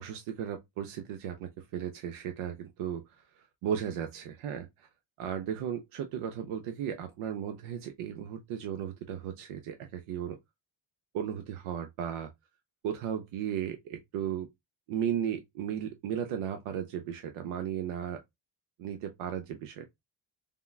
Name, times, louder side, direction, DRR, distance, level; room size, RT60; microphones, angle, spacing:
voice 1, 0.0-4.9 5.2-10.4 11.1-12.3 12.8-14.5 14.9-18.2 18.8-19.9, right 9 dB, 85° right, 0.6 m, -35 dB
3.5 x 2.2 x 2.2 m
cardioid pair, 150°, 48 cm